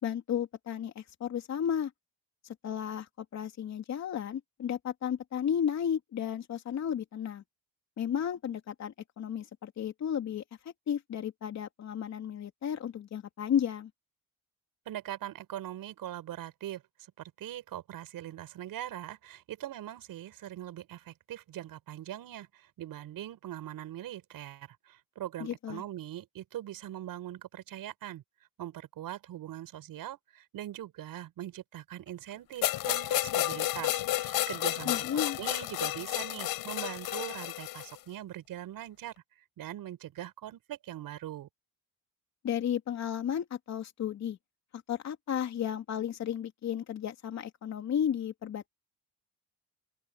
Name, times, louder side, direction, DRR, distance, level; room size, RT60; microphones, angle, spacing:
voice 1, 0.0-1.9 2.6-7.4 8.0-10.4 10.9-13.9 25.4-25.8 34.8-35.4 42.4-44.4 44.9-48.7, left 9 dB, 50° left, 3.1 m, -33 dB
voice 2, 14.9-16.8 17.2-28.2 28.6-39.1 39.6-41.5, right 12 dB, 65° right, 7.2 m, -41 dB
sound 1, 32.6-38.0, left 14 dB, 85° left, 4.6 m, -31 dB
open air
cardioid pair, 165°, 36 cm